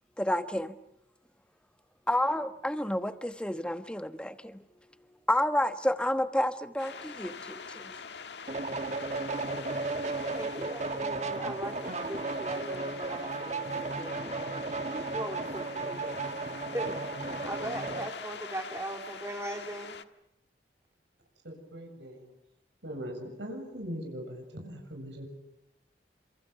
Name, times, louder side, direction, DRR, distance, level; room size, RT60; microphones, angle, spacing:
voice 1, 0.2-0.7 2.1-4.6 5.3-8.0, left 1 dB, 5° left, 9 dB, 1.2 m, -30 dB
sound 1, 6.8-20.0, left 5 dB, 70° left, 1.6 m, -45 dB
sound 2, 8.5-18.1, right 3 dB, 35° right, 1.6 m, -34 dB
voice 2, 10.3-16.2 16.7-20.0, right 1 dB, 15° right, 2 dB, 2.7 m, -40 dB
voice 3, 21.4-22.3 22.8-25.3, equal, 75° right, 3 dB, 7.4 m, -40 dB
29.5 x 28.0 x 6.9 m, 0.82 s
head